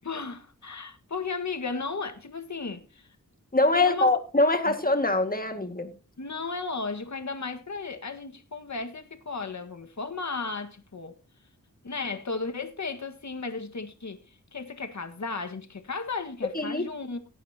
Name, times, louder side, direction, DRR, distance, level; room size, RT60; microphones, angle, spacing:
voice 1, 0.0-3.1 3.7-4.1 4.7-4.8 6.2-11.2 11.8-14.2 14.5-17.2, left 4 dB, 55° left, 1.8 m, -35 dB
voice 2, 3.5-5.9 16.5-16.8, left 2 dB, 25° left, 2.1 m, -23 dB
18.0 x 9.2 x 2.9 m
wide cardioid pair, 65°, 34 cm